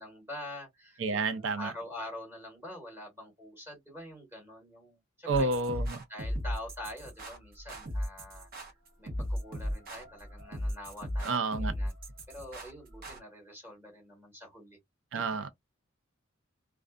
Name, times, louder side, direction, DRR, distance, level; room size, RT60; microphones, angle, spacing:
voice 1, 0.0-5.5 6.1-11.9 12.3-14.8 15.1-15.5, left 1 dB, 15° right, 1.2 m, -45 dB
voice 2, 1.0-1.7 5.3-6.0 11.2-11.7 15.1-15.5, right 3 dB, 75° right, 0.5 m, -30 dB
sound 1, 5.3-13.2, equal, 50° right, 1.0 m, -36 dB
2.5 x 2.3 x 2.3 m
head